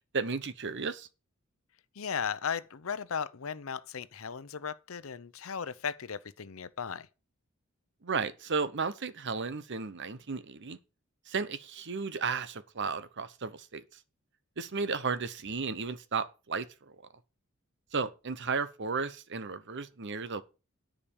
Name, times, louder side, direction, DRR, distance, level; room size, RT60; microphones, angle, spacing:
voice 1, 0.1-1.1 8.0-10.8 11.3-13.8 14.6-16.9 17.9-20.4, right 5 dB, 55° right, 0.9 m, -34 dB
voice 2, 2.0-7.1, left 6 dB, 70° left, 0.7 m, -36 dB
10.0 x 5.1 x 7.0 m
head